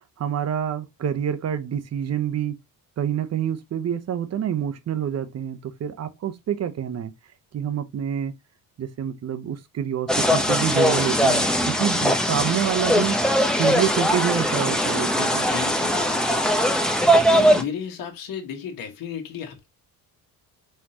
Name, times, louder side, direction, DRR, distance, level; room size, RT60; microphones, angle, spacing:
voice 1, 0.2-2.6 3.0-7.1 7.5-8.3 8.8-13.2 13.5-15.5, right 9 dB, 45° right, 0.8 m, -27 dB
sound 1, 10.1-17.6, equal, ahead, 0.9 m, -20 dB
voice 2, 15.5-16.4 17.3-19.7, left 7 dB, 65° left, 1.5 m, -34 dB
4.3 x 3.7 x 2.9 m
cardioid pair, 110°, 36 cm